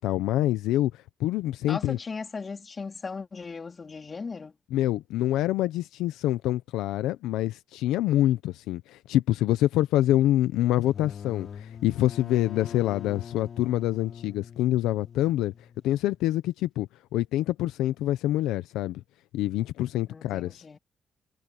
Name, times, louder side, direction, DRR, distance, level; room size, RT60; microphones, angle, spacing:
voice 1, 0.0-2.0 4.7-15.5 15.8-19.0 19.3-20.6, left 14 dB, 90° left, 0.7 m, -26 dB
voice 2, 1.7-4.5 20.1-20.8, left 4 dB, 40° left, 3.3 m, -37 dB
sound 1, 10.7-16.3, left 7 dB, 60° left, 4.9 m, -43 dB
supercardioid pair, 65°, 0 cm